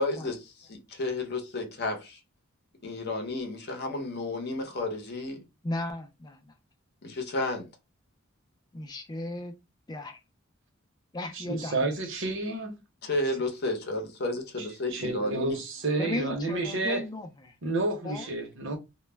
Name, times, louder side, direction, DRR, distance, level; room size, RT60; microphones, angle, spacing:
voice 1, 0.0-2.2 2.8-5.4 7.0-7.7 13.0-15.6, left 2 dB, 50° left, 0.7 m, -32 dB
voice 2, 5.6-6.4 8.7-9.5 9.9-10.2 11.1-11.7 16.0-17.3 18.0-18.2, left 2 dB, 20° left, 0.4 m, -35 dB
voice 3, 11.3-12.8 14.6-17.0 17.6-18.8, right 2 dB, 65° right, 0.8 m, -30 dB
2.2 x 2.0 x 3.2 m
head